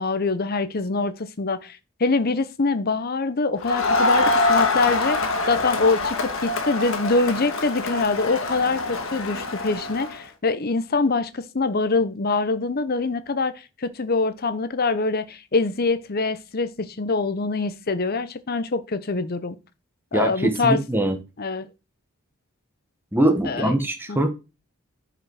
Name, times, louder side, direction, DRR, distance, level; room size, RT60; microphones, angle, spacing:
voice 1, 0.0-13.5 13.8-19.6 20.1-20.8 21.4-21.7 23.5-23.7 24.1-24.2, left 3 dB, 45° left, 0.7 m, -24 dB
Crowd, 3.6-10.2, left 2 dB, 65° left, 1.6 m, -24 dB
voice 2, 20.1-21.2 23.1-24.3, right 1 dB, 10° right, 1.1 m, -22 dB
10.0 x 5.1 x 4.8 m
head